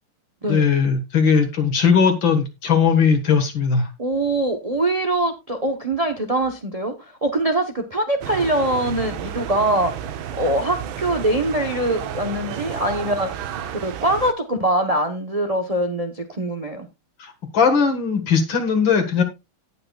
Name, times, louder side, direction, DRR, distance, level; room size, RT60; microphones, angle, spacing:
voice 1, 0.5-3.9 17.2-19.2, left 6 dB, 70° left, 5 dB, 2.2 m, -19 dB
voice 2, 4.0-9.9 10.4-13.3 13.7-16.9, right 1 dB, 35° right, 5 dB, 0.5 m, -23 dB
sound 1, 8.2-14.3, right 9 dB, 90° right, 1.6 m, -32 dB
17.5 x 5.9 x 2.3 m, 0.24 s
omnidirectional pair, 2.2 m